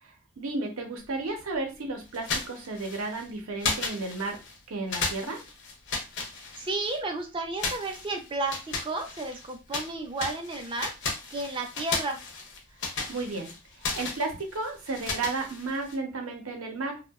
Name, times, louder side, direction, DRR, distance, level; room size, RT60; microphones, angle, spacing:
voice 1, 0.0-4.4 4.7-5.4 13.1-13.5 13.8-17.0, right 3 dB, 70° right, 3 dB, 0.6 m, -33 dB
sound 1, 2.1-3.2 3.6-4.6 4.9-7.0 7.6-9.9 10.2-16.0, left 4 dB, 55° left, 0.6 m, -34 dB
voice 2, 6.5-10.9 11.3-12.2, right 2 dB, 25° right, 4 dB, 0.4 m, -32 dB
2.7 x 2.1 x 2.2 m, 0.29 s
head